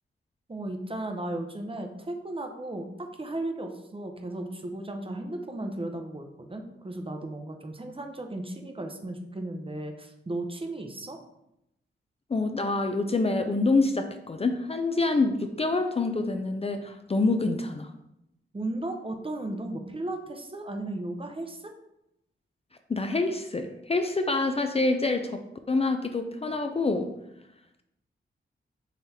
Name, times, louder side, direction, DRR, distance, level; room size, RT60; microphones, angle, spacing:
voice 1, 0.5-11.2 18.5-21.7, right 2 dB, 25° right, 5 dB, 0.8 m, -35 dB
voice 2, 12.3-17.9 22.9-25.4 25.7-27.1, left 3 dB, 30° left, 6 dB, 0.5 m, -26 dB
3.9 x 3.3 x 4.1 m, 0.84 s
cardioid pair, 50°, 21 cm